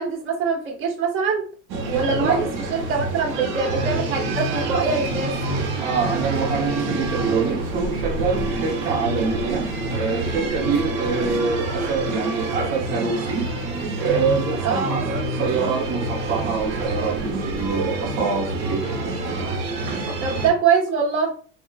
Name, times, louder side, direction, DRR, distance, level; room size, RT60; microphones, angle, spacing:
voice 1, 0.0-1.4 1.9-5.3 14.6-15.0 20.2-21.3, right 5 dB, 35° right, 0 dB, 1.3 m, -23 dB
sound 1, 1.7-20.5, right 2 dB, 55° right, 1.0 m, -27 dB
voice 2, 5.8-9.7 9.9-13.5 14.0-15.0 15.4-19.0 20.1-20.2, right 5 dB, 80° right, -4 dB, 1.0 m, -25 dB
3.8 x 2.3 x 2.3 m, 0.40 s
supercardioid pair, 125°, 37 cm